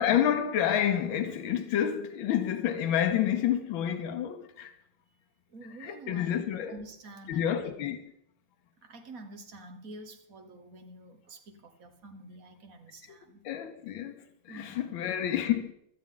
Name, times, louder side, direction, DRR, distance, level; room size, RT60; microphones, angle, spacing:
voice 1, 0.0-4.7 5.8-6.7 7.3-8.0 13.4-15.7, left 10 dB, 85° left, 1.6 m, -29 dB
voice 2, 5.5-7.7 8.8-13.5 14.5-15.0, right 1 dB, 50° right, 1.5 m, -48 dB
16.5 x 12.5 x 3.8 m
omnidirectional pair, 2.1 m